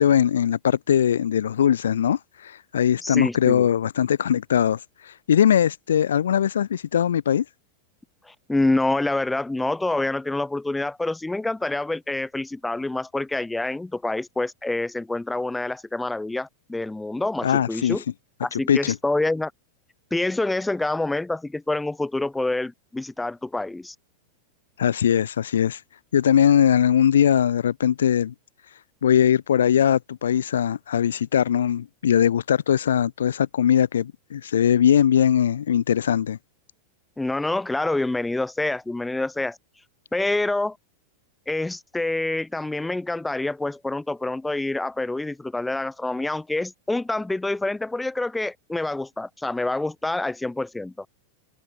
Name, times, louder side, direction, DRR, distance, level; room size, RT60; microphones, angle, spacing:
voice 1, 0.0-7.4 17.4-18.0 18.5-19.0 24.8-25.8 26.1-28.3 29.0-36.4, left 9 dB, 65° left, 0.8 m, -20 dB
voice 2, 3.0-3.7 8.3-18.0 18.4-19.5 20.1-23.9 37.2-39.6 40.1-40.8 41.5-51.1, left 2 dB, 5° left, 2.2 m, -27 dB
open air
figure-of-eight pair, 90°, 0 cm